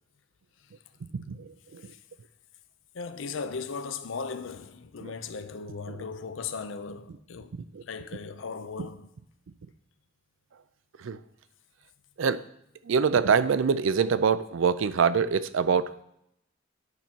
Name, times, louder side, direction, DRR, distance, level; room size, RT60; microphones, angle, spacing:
voice 1, 1.1-1.8 5.0-5.1 5.9-6.0 7.7-7.8 11.0-11.2 12.2-12.4 12.9-16.0, right 6 dB, 70° right, 0.4 m, -25 dB
voice 2, 2.9-7.5 7.8-9.1, left 5 dB, 70° left, 0.6 m, -37 dB
9.7 x 5.5 x 4.5 m
head